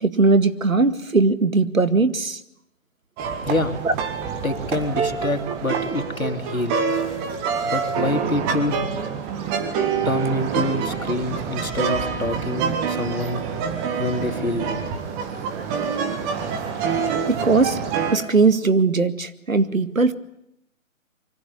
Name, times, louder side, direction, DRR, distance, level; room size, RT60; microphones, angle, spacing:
voice 1, 0.0-2.4 3.8-3.9 17.3-17.8 18.1-20.1, right 3 dB, 75° right, 11 dB, 2.1 m, -19 dB
sound 1, 3.2-18.2, right 6 dB, 15° right, 1.7 m, -26 dB
voice 2, 3.5-3.8 4.4-6.8 7.6-8.8 10.0-13.4 14.0-14.8, left 1 dB, 85° left, 6 dB, 3.2 m, -26 dB
25.5 x 24.5 x 8.6 m, 0.78 s
figure-of-eight pair, 140°, 40 cm